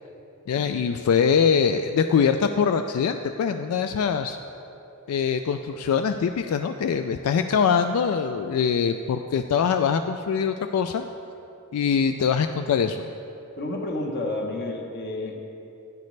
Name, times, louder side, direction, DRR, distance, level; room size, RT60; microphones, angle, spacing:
voice 1, 0.5-4.4 5.1-11.0 11.7-13.1, left 6 dB, 85° left, 8 dB, 0.3 m, -23 dB
voice 2, 13.6-15.4, left 2 dB, 50° left, 2 dB, 1.0 m, -30 dB
10.5 x 9.6 x 3.2 m, 2.9 s
head